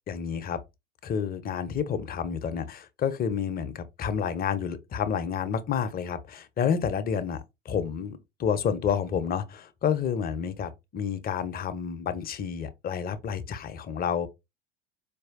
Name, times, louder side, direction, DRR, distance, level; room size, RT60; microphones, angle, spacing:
voice 1, 0.1-0.6 1.0-14.3, left 7 dB, 25° left, 0.5 m, -29 dB
4.3 x 2.6 x 2.4 m
figure-of-eight pair, 75°, 35 cm